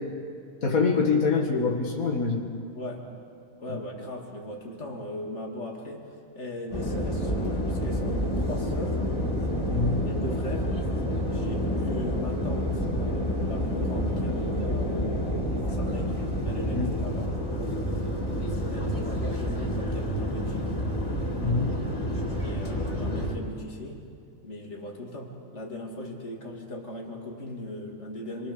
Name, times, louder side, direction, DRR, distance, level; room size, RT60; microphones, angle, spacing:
voice 1, 0.6-2.4 9.7-10.1 16.7-16.9 21.4-21.8, left 4 dB, 90° left, -1 dB, 2.4 m, -25 dB
voice 2, 2.7-3.2 3.6-6.1 6.3-9.0 10.2-10.9 11.3-17.4 18.5-20.8 22.4-24.1 24.4-28.5, left 1 dB, 55° left, 0 dB, 3.1 m, -38 dB
sound 1, 6.7-23.3, equal, 25° left, 3.6 m, -29 dB
27.5 x 24.0 x 7.0 m, 2.3 s
omnidirectional pair, 1.4 m